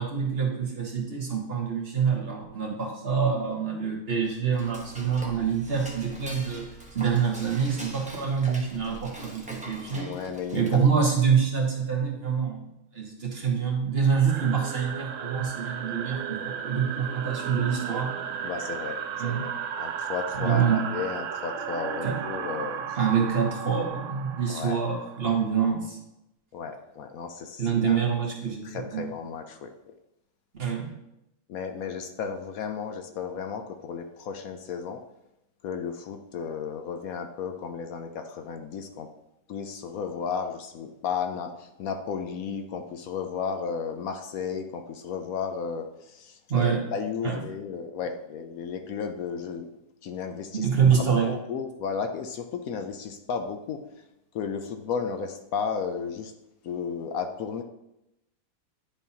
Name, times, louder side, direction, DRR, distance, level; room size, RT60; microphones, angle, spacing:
voice 1, 0.0-10.1 10.5-12.6 12.9-18.1 19.2-19.5 20.4-20.8 22.0-22.4 22.9-26.0 27.6-29.1 30.6-30.9 46.5-46.9 47.2-47.4 50.5-51.3, right 6 dB, 40° right, -1 dB, 1.3 m, -26 dB
Dishes pots and pans / Cutlery silverware, 4.2-11.1, right 1 dB, 5° right, 1.0 m, -44 dB
voice 2, 9.9-10.6 18.4-19.5 19.8-23.0 24.5-24.8 26.5-28.0 28.6-29.9 31.5-35.0 35.6-39.1 39.5-49.7 50.0-50.7 51.2-53.8 54.3-56.3 56.6-57.6, left 6 dB, 70° left, 6 dB, 1.0 m, -34 dB
sound 1, 14.3-25.6, right 7 dB, 70° right, 0.8 m, -35 dB
10.0 x 5.4 x 2.8 m, 0.87 s
omnidirectional pair, 1.7 m